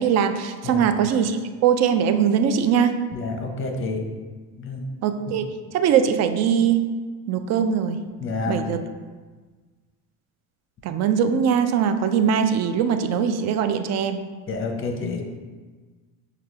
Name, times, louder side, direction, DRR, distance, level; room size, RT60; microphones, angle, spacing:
voice 1, 0.0-3.0 5.0-5.5 5.7-6.9 7.3-8.0 8.4-8.8 10.8-14.2, right 7 dB, 40° right, 9 dB, 0.4 m, -21 dB
voice 2, 3.1-4.0 4.6-4.8 8.2-8.6 14.5-15.2, left 3 dB, 30° left, 2 dB, 0.8 m, -28 dB
5.7 x 2.4 x 3.3 m, 1.4 s
hypercardioid pair, 75°, 44 cm